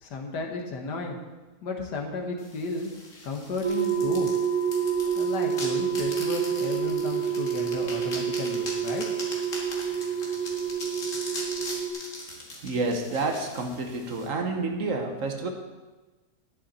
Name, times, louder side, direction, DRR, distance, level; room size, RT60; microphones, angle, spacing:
voice 1, 0.0-1.2 1.6-2.9 3.2-4.3 5.2-9.1, left 3 dB, 80° left, 2 dB, 2.0 m, -33 dB
sound 1, 2.4-14.3, left 2 dB, 50° left, 2.3 m, -40 dB
sound 2, 3.6-11.9, right 8 dB, 20° right, 1.3 m, -28 dB
voice 2, 12.6-15.5, right 3 dB, 55° right, 4 dB, 1.3 m, -29 dB
10.5 x 10.5 x 4.2 m, 1.2 s
omnidirectional pair, 1.8 m